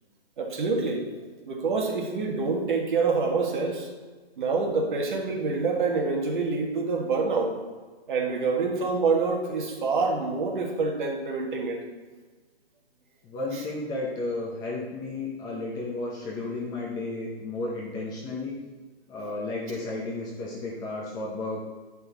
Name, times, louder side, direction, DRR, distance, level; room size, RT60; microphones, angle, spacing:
voice 1, 0.4-1.1 1.5-3.9 4.4-7.5 8.1-11.8 13.5-13.6, right 4 dB, 50° right, 1 dB, 1.7 m, -26 dB
voice 2, 13.2-18.5 19.1-21.6, left 2 dB, 10° left, -3 dB, 0.7 m, -33 dB
10.0 x 5.6 x 4.1 m, 1.3 s
hypercardioid pair, 155°, 32 cm